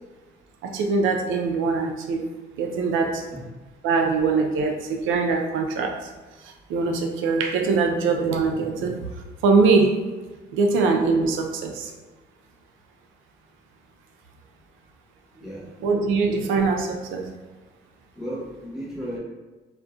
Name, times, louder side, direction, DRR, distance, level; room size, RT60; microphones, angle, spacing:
voice 1, 0.6-2.2 2.6-3.2 3.8-6.1 6.4-9.0 9.4-9.9 10.5-11.9 15.8-17.3, right 4 dB, 85° right, 3 dB, 0.4 m, -22 dB
voice 2, 15.3-15.7 18.2-19.2, equal, ahead, -7 dB, 0.8 m, -34 dB
2.5 x 2.1 x 2.3 m, 1.2 s
cardioid pair, 90°, 20 cm